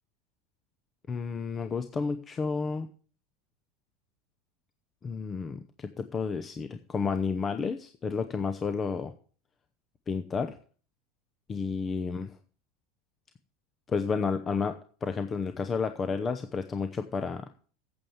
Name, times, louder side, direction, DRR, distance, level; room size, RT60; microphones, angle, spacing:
voice 1, 1.1-2.9 5.0-9.1 10.1-10.5 11.5-12.3 13.9-14.8 15.0-17.5, left 5 dB, 20° left, 9 dB, 0.8 m, -31 dB
8.8 x 8.0 x 7.2 m, 0.42 s
supercardioid pair, 140°, 0 cm